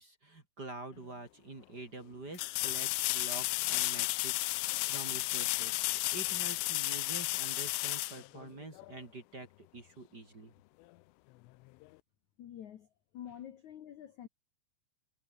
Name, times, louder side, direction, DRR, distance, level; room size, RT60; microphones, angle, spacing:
voice 1, 0.0-10.5, right 2 dB, 25° right, 3.1 m, -47 dB
sound 1, 1.0-1.1 2.3-9.0 11.8-11.9, left 22 dB, 90° left, 3.2 m, -33 dB
voice 2, 12.4-12.9 13.1-14.3, left 10 dB, 65° left, 1.9 m, -47 dB
omnidirectional pair, 5.6 m